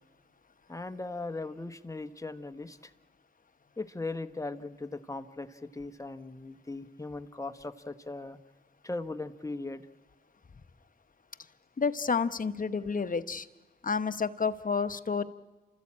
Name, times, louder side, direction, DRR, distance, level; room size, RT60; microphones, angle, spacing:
voice 1, 0.7-2.9 3.8-8.4 8.8-9.9, left 2 dB, 15° left, 8 dB, 1.3 m, -38 dB
voice 2, 11.8-13.5 13.8-15.2, left 5 dB, 45° left, 12 dB, 1.0 m, -30 dB
29.0 x 14.0 x 8.8 m, 1.2 s
cardioid pair, 60°, 19 cm